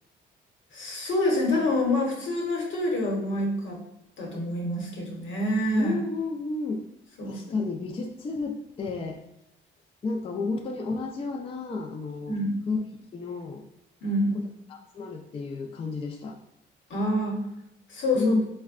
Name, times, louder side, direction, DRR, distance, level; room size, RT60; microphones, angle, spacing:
voice 1, 0.7-3.8 4.2-5.9 7.2-7.4 12.3-12.6 14.0-14.4 16.9-17.4 17.9-18.3, left 1 dB, 70° left, 0 dB, 1.0 m, -27 dB
voice 2, 5.7-6.9 7.3-9.2 10.0-12.4 12.7-12.8 13.1-13.6 14.3-16.4 18.1-18.4, left 3 dB, 30° left, 2 dB, 0.3 m, -31 dB
4.3 x 2.1 x 2.4 m, 0.80 s
cardioid pair, 90°, 20 cm